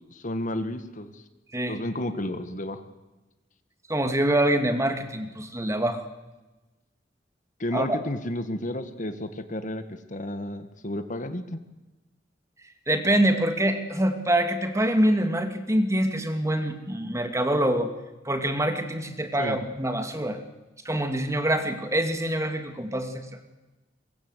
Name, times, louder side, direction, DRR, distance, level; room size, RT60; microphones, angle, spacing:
voice 1, 0.1-1.2 1.7-2.8 7.6-11.6 19.4-19.6, left 1 dB, 45° left, 10 dB, 1.8 m, -32 dB
voice 2, 3.9-6.0 7.7-8.0 12.9-17.9 18.2-20.4 20.8-23.3, right 1 dB, 15° right, 7 dB, 2.4 m, -25 dB
23.5 x 23.5 x 8.2 m, 1.1 s
head